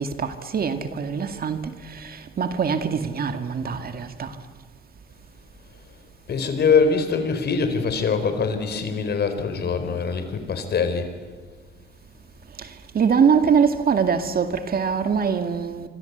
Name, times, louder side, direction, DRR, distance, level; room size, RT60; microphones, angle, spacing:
voice 1, 0.0-4.4 12.6-12.7 12.9-15.9, right 6 dB, 50° right, 2.2 m, -23 dB
voice 2, 6.3-11.1, left 5 dB, 55° left, 4.4 m, -23 dB
26.0 x 25.0 x 8.2 m
cardioid pair, 90°, 20 cm